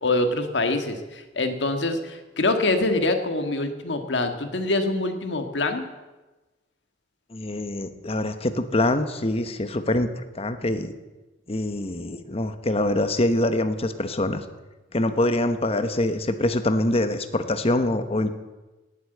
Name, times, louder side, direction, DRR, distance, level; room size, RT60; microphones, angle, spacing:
voice 1, 0.0-5.9, left 2 dB, 70° left, 6 dB, 1.8 m, -25 dB
voice 2, 7.3-10.9 11.5-14.4 14.9-18.3, left 1 dB, 35° left, 9 dB, 1.1 m, -24 dB
18.0 x 8.2 x 7.9 m, 1.1 s
head